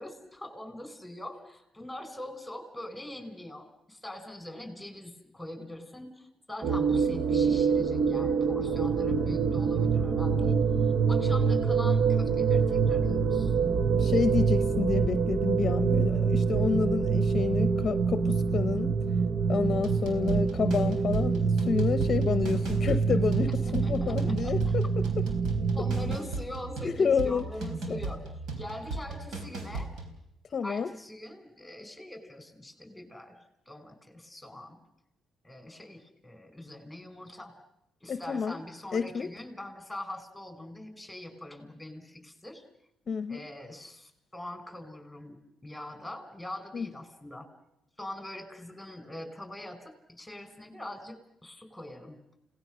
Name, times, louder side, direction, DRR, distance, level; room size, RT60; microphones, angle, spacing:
voice 1, 0.0-13.5 23.3-24.8 25.7-28.2 28.6-29.9 30.6-33.4 33.7-34.8 35.4-37.5 38.0-42.6 43.3-47.5 48.0-52.2, left 1 dB, 5° left, 8 dB, 5.1 m, -43 dB
sound 1, 6.6-26.2, right 5 dB, 50° right, 0.9 m, -26 dB
voice 2, 14.0-18.9 19.5-25.0 26.8-27.5 27.9-28.0 30.5-30.9 38.1-38.6 38.9-39.3 43.1-43.5 46.7-46.9, left 6 dB, 45° left, 11 dB, 0.8 m, -29 dB
sound 2, 19.8-30.2, right 3 dB, 80° right, 4.2 m, -37 dB
29.5 x 18.0 x 6.3 m, 0.82 s
cardioid pair, 90°, 0 cm